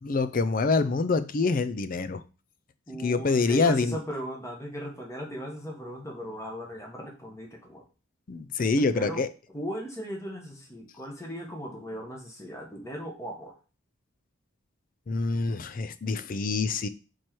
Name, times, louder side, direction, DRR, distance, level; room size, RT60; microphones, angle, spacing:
voice 1, 0.0-2.2 3.0-4.0 8.3-9.3 15.1-16.9, left 3 dB, 40° left, 0.4 m, -26 dB
voice 2, 2.9-7.8 8.8-9.2 9.5-13.5, equal, 15° left, 1.3 m, -37 dB
4.6 x 4.5 x 4.5 m
head